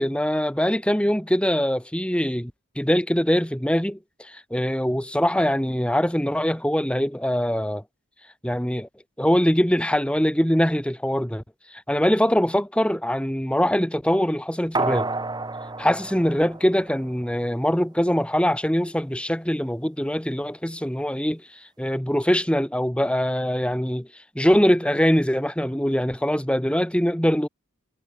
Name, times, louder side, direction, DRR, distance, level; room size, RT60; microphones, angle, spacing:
voice 1, 0.0-7.8 8.4-8.9 9.2-11.4 11.9-15.1 15.8-21.4 21.8-24.1 24.4-27.5, equal, 5° left, 1.9 m, -23 dB
sound 1, 14.7-17.3 17.7-17.8, right 3 dB, 20° right, 1.7 m, -30 dB
head